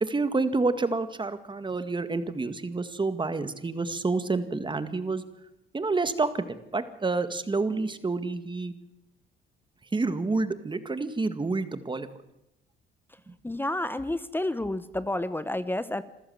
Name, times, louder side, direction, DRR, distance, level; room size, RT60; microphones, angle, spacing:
voice 1, 0.0-5.2 5.7-8.7 9.9-12.1 13.3-13.4, right 3 dB, 25° right, 11 dB, 1.9 m, -28 dB
voice 2, 13.4-16.0, left 1 dB, 10° left, 13 dB, 1.0 m, -30 dB
27.0 x 14.5 x 7.9 m, 0.87 s
cardioid pair, 90°, 20 cm